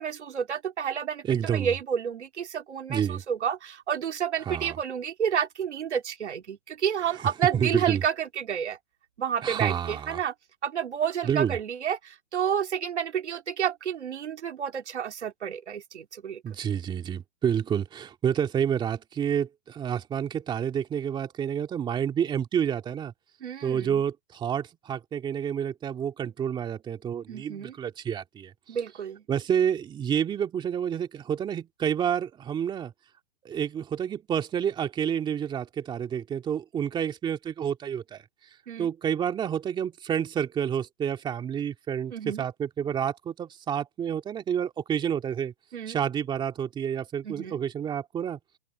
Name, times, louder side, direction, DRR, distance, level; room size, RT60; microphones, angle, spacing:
voice 1, 0.0-8.8 9.2-10.3 10.6-16.4 23.4-24.0 27.3-27.7 28.7-29.2 38.7-38.9 42.1-42.4 45.7-46.0 47.2-47.6, right 8 dB, 85° right, 2.8 m, -30 dB
voice 2, 1.3-1.7 2.9-3.2 4.5-4.8 7.5-8.0 9.4-10.2 11.3-11.6 16.4-23.1 23.6-28.5 29.3-32.9 33.4-38.2 38.8-45.5 45.9-48.4, right 8 dB, 15° right, 2.1 m, -29 dB
open air
hypercardioid pair, 150°, 34 cm